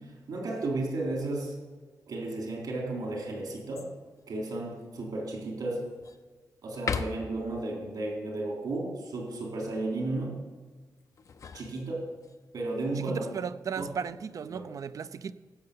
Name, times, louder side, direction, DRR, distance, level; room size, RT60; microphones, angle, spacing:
voice 1, 0.3-1.5 2.1-3.9 4.3-5.9 6.6-10.4 11.5-12.1 12.5-13.3 13.8-13.9 14.5-14.7, right 2 dB, 80° right, 3.7 m, -33 dB
sound 1, 3.7-4.2 4.8-4.9 5.4-6.2 6.7-7.5 11.0-12.4 13.7-14.3, left 6 dB, 55° left, 0.7 m, -38 dB
voice 2, 13.0-15.3, right 6 dB, 60° right, 0.5 m, -36 dB
16.0 x 6.8 x 6.8 m
wide cardioid pair, 100°, 7 cm